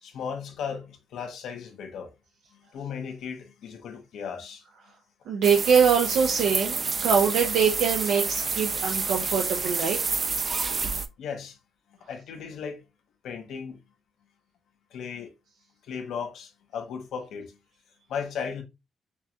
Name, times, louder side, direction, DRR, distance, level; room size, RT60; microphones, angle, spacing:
voice 1, 0.0-2.1 2.5-4.6 11.2-11.6 12.1-12.8 13.2-13.8 14.9-15.3 15.8-17.6 18.1-18.6, left 6 dB, 80° left, 1.1 m, -36 dB
voice 2, 5.3-10.0, right 6 dB, 90° right, 0.7 m, -23 dB
sound 1, 5.4-11.1, right 4 dB, 35° right, 0.4 m, -28 dB
5.7 x 2.3 x 2.9 m
cardioid pair, 115°, 0 cm